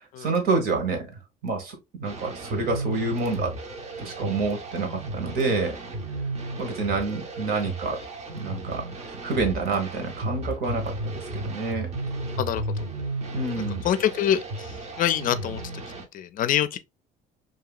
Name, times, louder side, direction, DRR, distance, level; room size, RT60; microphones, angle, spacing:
voice 1, 0.2-3.5 4.0-5.8 6.6-8.0 8.3-8.8 9.2-10.9 11.3-11.9 13.3-13.8, right 3 dB, 65° right, 1.2 m, -28 dB
sound 1, 2.0-16.0, right 2 dB, 40° right, 0.6 m, -34 dB
voice 2, 13.8-14.4 15.0-15.6 16.1-16.8, left 10 dB, 55° left, 0.4 m, -24 dB
2.8 x 2.7 x 2.3 m
cardioid pair, 110°, 17 cm